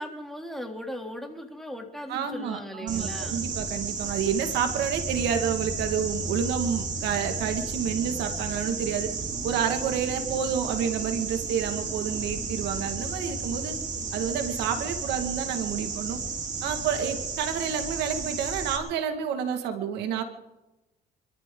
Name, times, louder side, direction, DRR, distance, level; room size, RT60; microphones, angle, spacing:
voice 1, 0.0-3.5, equal, ahead, 2 dB, 3.0 m, -38 dB
voice 2, 2.1-9.1 9.4-13.7 14.1-16.2 16.6-20.2, right 8 dB, 85° right, 7 dB, 2.0 m, -29 dB
sound 1, 2.9-18.8, right 4 dB, 45° right, 3.5 m, -33 dB
27.5 x 13.5 x 3.9 m, 0.99 s
cardioid pair, 110°, 17 cm